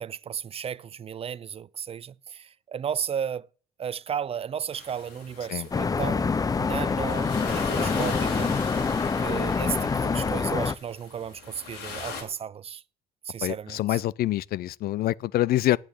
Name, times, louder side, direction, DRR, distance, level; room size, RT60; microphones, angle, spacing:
voice 1, 0.0-3.5 3.8-8.5 9.2-12.8 13.3-14.0, right 8 dB, 35° right, 0.5 m, -34 dB
sound 1, 4.7-12.2, left 5 dB, 85° left, 6.5 m, -39 dB
sound 2, 5.7-10.7, left 5 dB, 20° left, 0.6 m, -26 dB
voice 2, 13.4-15.8, left 14 dB, 65° left, 0.5 m, -26 dB
8.8 x 8.8 x 9.6 m
cardioid pair, 110°, 17 cm